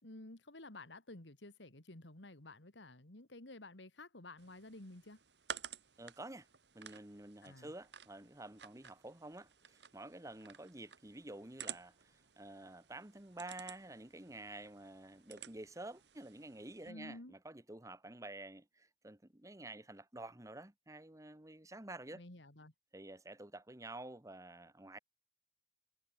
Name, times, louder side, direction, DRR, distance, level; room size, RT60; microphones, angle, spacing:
voice 1, 0.0-5.2 7.4-7.7 16.9-17.3 22.1-22.7, left 2 dB, 85° left, 2.7 m, -52 dB
sound 1, 4.4-16.9, right 8 dB, 75° right, 2.9 m, -53 dB
voice 2, 6.0-6.5 6.7-22.2 22.9-25.0, right 2 dB, 20° right, 1.3 m, -50 dB
head